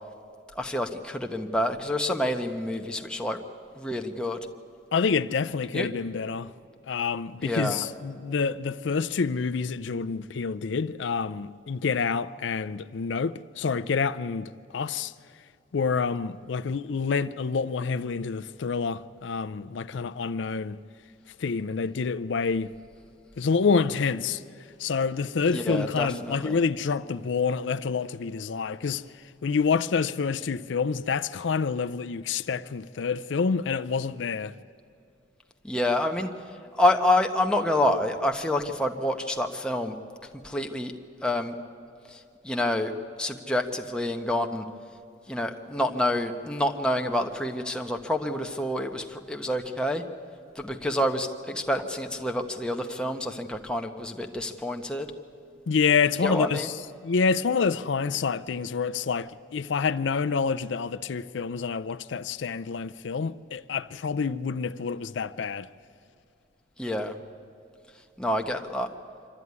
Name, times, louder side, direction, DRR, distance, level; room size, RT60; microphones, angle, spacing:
voice 1, 0.6-3.4 3.8-4.4 5.7-5.9 7.4-7.9 25.5-26.6 35.6-36.3 36.8-39.9 40.4-40.9 41.2-41.5 42.1-42.2 42.4-42.9 43.2-44.6 45.3-50.0 50.6-55.1 56.2-56.7 66.8-67.1 68.2-68.9, left 1 dB, 5° left, 1.0 m, -27 dB
voice 2, 4.9-6.5 6.9-15.1 15.7-20.8 21.4-22.7 23.4-24.4 24.8-29.0 29.4-34.5 55.7-65.7, left 5 dB, 75° left, 0.5 m, -27 dB
26.0 x 13.0 x 9.5 m
head